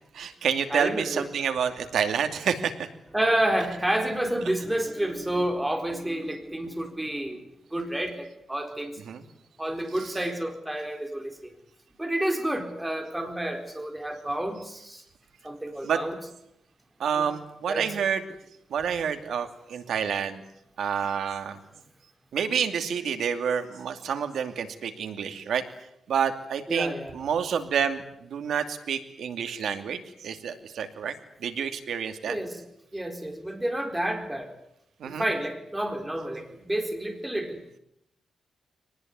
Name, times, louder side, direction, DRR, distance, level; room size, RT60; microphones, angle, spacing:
voice 1, 0.1-2.9 9.1-9.2 15.8-16.0 17.0-18.2 18.7-20.4 20.8-21.6 22.3-25.6 26.1-31.1 31.4-32.4 35.0-35.2, right 7 dB, 75° right, 7 dB, 2.6 m, -28 dB
voice 2, 0.7-1.3 3.1-7.4 7.7-9.0 9.6-11.5 12.0-15.0 15.4-16.1 17.1-17.3 17.7-17.9 26.7-27.2 32.3-32.6 32.9-34.5 35.0-37.6, right 1 dB, 10° right, 5 dB, 4.2 m, -29 dB
23.0 x 19.5 x 9.5 m, 0.80 s
wide cardioid pair, 130°, 0 cm